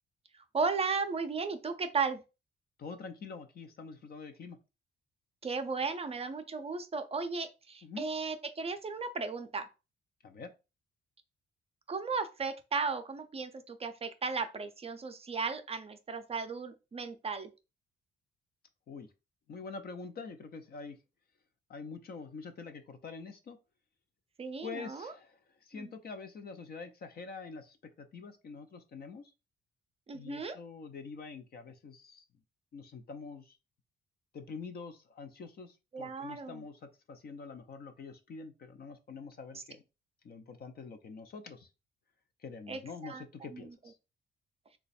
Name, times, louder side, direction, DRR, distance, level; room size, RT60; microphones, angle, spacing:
voice 1, 0.3-2.2 5.4-9.7 11.9-17.5 24.4-25.1 25.7-25.9 30.1-30.6 35.9-36.6 39.5-39.6 42.7-43.2 43.5-43.7, right 4 dB, 30° right, 0.5 m, -35 dB
voice 2, 2.8-4.6 7.8-8.1 10.2-10.5 18.9-19.1 19.5-21.0 21.7-23.6 24.6-29.3 30.1-32.2 32.7-33.6 34.3-39.8 40.2-41.7 42.4-44.0, left 4 dB, 50° left, 0.6 m, -45 dB
3.0 x 2.3 x 4.2 m
cardioid pair, 90°, 20 cm